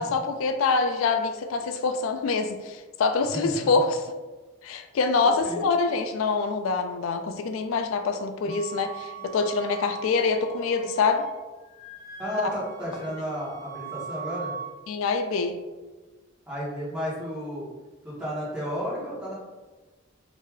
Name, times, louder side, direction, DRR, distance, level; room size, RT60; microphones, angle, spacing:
voice 1, 0.0-4.0 4.6-11.2 14.9-15.6, left 4 dB, 80° left, 7 dB, 0.3 m, -25 dB
voice 2, 3.3-3.7 5.2-5.9 8.4-8.5 9.1-9.2 12.2-14.5 16.5-17.7 18.0-19.3, equal, 5° right, -10 dB, 1.3 m, -33 dB
Wind instrument woodwind instrument, 8.5-11.4 11.6-14.7, right 6 dB, 35° left, 0.9 m, -41 dB
2.9 x 2.7 x 3.7 m, 1.2 s
head